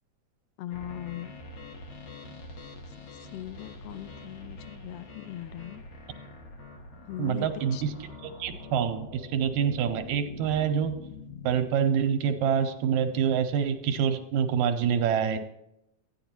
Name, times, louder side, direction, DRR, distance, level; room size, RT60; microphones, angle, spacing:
voice 1, 0.6-1.4 2.9-5.8 7.0-7.8, left 13 dB, 80° left, 10 dB, 1.4 m, -40 dB
sound 1, 0.7-11.5, left 2 dB, 65° left, 1.9 m, -45 dB
voice 2, 7.2-7.9 8.4-11.0 11.4-15.4, right 8 dB, 80° right, 8 dB, 2.0 m, -26 dB
13.0 x 9.3 x 3.0 m, 0.82 s
omnidirectional pair, 3.4 m